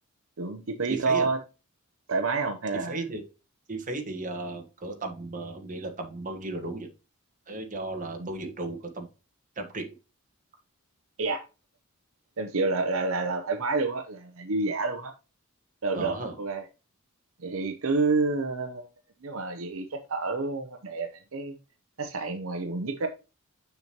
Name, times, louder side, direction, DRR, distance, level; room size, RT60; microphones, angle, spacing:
voice 1, 0.4-1.4 2.1-3.1 8.2-8.3 11.2-11.4 12.4-15.1 15.8-16.7 17.4-18.9 19.2-21.6 22.0-23.1, right 3 dB, 65° right, 6 dB, 0.7 m, -29 dB
voice 2, 0.9-1.3 2.9-3.2 3.7-6.9 7.5-9.1 9.6-9.9 15.9-16.3, right 2 dB, 35° right, 4 dB, 1.4 m, -35 dB
6.7 x 5.9 x 2.9 m, 0.30 s
head